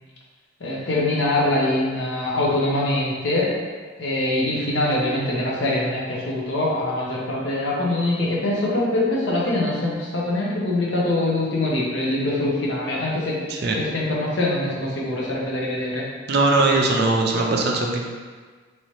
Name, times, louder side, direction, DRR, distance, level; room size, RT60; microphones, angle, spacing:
voice 1, 0.6-3.5 4.0-13.4 13.7-16.0, left 1 dB, 60° left, -4 dB, 0.7 m, -23 dB
voice 2, 16.3-18.0, right 2 dB, 50° right, 0 dB, 0.4 m, -20 dB
3.1 x 2.8 x 3.1 m, 1.5 s
head